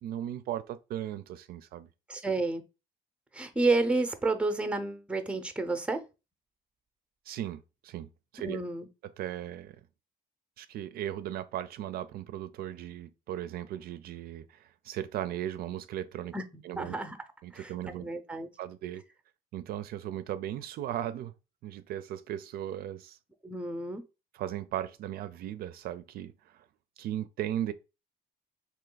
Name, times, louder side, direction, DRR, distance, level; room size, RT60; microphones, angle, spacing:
voice 1, 0.0-1.9 7.3-8.1 8.3-8.6 9.2-9.8 10.6-16.4 16.6-16.9 17.4-18.1 18.6-19.0 19.5-21.3 21.6-23.2 24.3-26.6 27.0-27.7, right 11 dB, 65° right, 0.4 m, -37 dB
voice 2, 2.1-2.6 3.3-6.0 8.4-8.9 16.3-16.4 16.7-17.2 17.5-17.7 18.0-18.5 23.4-24.0, right 3 dB, 5° right, 0.6 m, -30 dB
3.3 x 3.0 x 3.8 m
cardioid pair, 110°, 17 cm